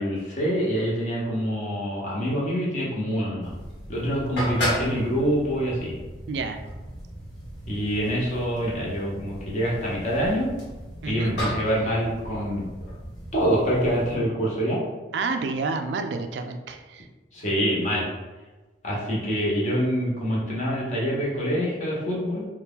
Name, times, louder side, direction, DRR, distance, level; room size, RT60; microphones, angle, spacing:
voice 1, 0.0-3.5 3.9-6.0 7.7-10.5 11.0-12.7 13.3-14.8 17.3-18.0 18.8-22.5, equal, 40° left, -5 dB, 0.9 m, -25 dB
sound 1, 3.4-14.2, equal, 75° left, 1.3 m, -35 dB
voice 2, 6.3-6.6 11.0-11.4 15.1-17.1, right 4 dB, 70° right, 7 dB, 0.3 m, -29 dB
2.8 x 2.3 x 3.6 m, 1.2 s
head